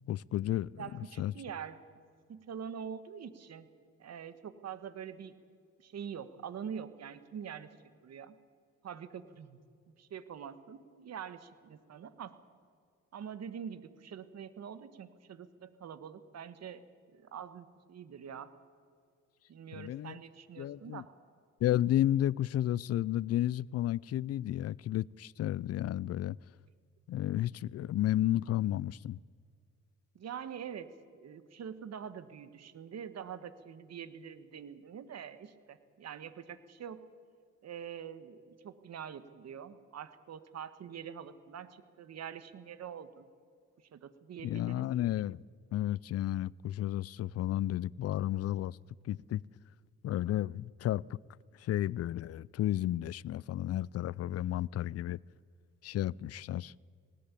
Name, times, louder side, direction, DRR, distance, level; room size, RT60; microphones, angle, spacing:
voice 1, 0.1-0.9 1.2-1.3 19.7-20.2 20.6-21.0 21.6-26.4 27.1-29.2 44.4-45.4 45.7-48.8 49.0-49.4 50.0-51.0 51.6-55.2 55.8-56.7, left 13 dB, 55° left, 0.5 m, -32 dB
voice 2, 0.8-1.8 2.3-3.7 4.0-5.3 5.8-7.7 8.0-8.4 8.8-9.6 9.9-12.3 13.1-16.8 17.1-18.5 19.5-21.1 30.1-30.9 31.1-37.0 37.6-43.3 43.9-44.8, right 8 dB, 60° right, 1.5 m, -45 dB
19.0 x 18.5 x 8.4 m
cardioid pair, 90°, 30 cm